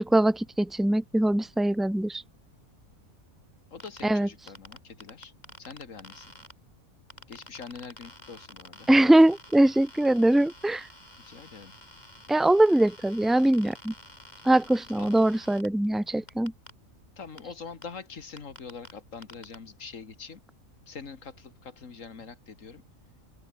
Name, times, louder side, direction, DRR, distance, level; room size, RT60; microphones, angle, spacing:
voice 1, 0.0-2.2 4.0-4.3 8.9-10.9 12.3-13.9 14.4-16.5, right 1 dB, ahead, 0.3 m, -22 dB
voice 2, 3.7-5.3 5.6-6.3 7.3-8.9 11.2-11.7 15.0-15.3 17.2-20.4 20.9-22.8, left 5 dB, 65° left, 2.2 m, -44 dB
sound 1, 3.8-4.0 4.5-6.5 7.1-15.7 16.3-16.7 17.4-17.5 17.8-17.9 18.4-18.9 19.2-19.6, left 1 dB, 30° left, 6.9 m, -49 dB
open air
omnidirectional pair, 1.5 m